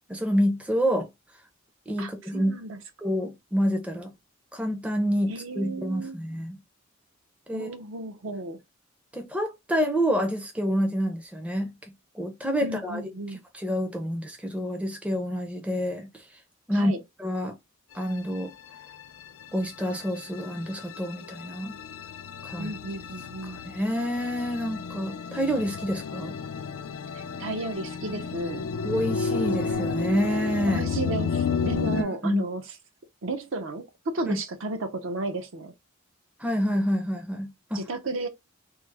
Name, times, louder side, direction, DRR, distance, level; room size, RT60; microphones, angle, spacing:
voice 1, 0.1-1.1 1.9-2.5 3.0-4.1 4.5-6.6 7.5-7.7 9.1-11.7 12.1-13.0 13.5-16.1 16.7-16.9 17.2-17.6 17.9-18.5 19.5-21.8 22.4-22.7 23.4-26.4 28.8-30.9 31.9-32.4 34.2-34.4 36.4-37.8, equal, 5° right, 0.4 m, -28 dB
voice 2, 2.0-2.8 5.3-6.2 7.5-8.6 12.6-13.4 16.7-17.0 22.6-23.6 27.1-28.6 30.7-32.6 33.2-35.7 37.7-38.3, right 2 dB, 70° right, 0.6 m, -33 dB
sound 1, 18.0-32.0, left 5 dB, 90° left, 0.4 m, -32 dB
3.1 x 2.0 x 3.3 m
head